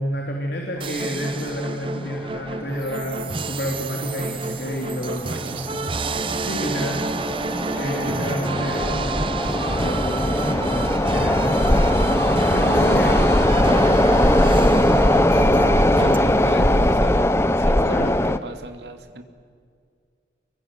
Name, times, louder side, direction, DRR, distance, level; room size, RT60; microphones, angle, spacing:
voice 1, 0.0-5.9 6.4-7.0 7.7-12.1 12.5-13.9 14.3-15.3 15.6-16.7 17.8-18.2, equal, 70° left, 0 dB, 3.6 m, -30 dB
sound 1, 0.8-16.2, right 3 dB, 30° right, 0.7 m, -29 dB
sound 2, 1.5-1.6 1.8-1.9 2.7-2.9 3.2-3.4 3.9-4.3 4.8-18.4, left 1 dB, 15° left, 0.7 m, -20 dB
voice 2, 5.0-5.7 7.6-7.8 15.9-17.3 17.6-19.2, right 2 dB, 75° right, 6 dB, 2.2 m, -37 dB
sound 3, 8.8-16.9, equal, 55° right, 4.1 m, -30 dB
26.5 x 22.5 x 8.1 m, 2.1 s
head